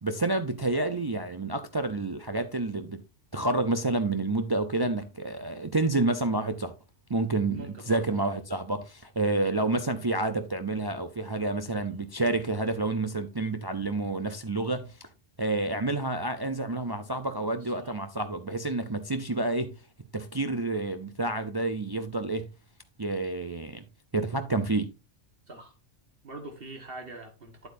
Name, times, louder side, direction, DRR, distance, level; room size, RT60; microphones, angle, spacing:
voice 1, 0.0-3.0 3.3-6.7 7.1-15.1 15.4-19.7 20.1-22.5 23.0-23.8 24.1-24.9, right 2 dB, 30° right, 0.4 m, -29 dB
voice 2, 7.5-8.3 17.6-17.9 25.5-25.7 26.2-27.7, right 2 dB, 50° right, 1.7 m, -44 dB
9.3 x 8.0 x 2.6 m
omnidirectional pair, 1.3 m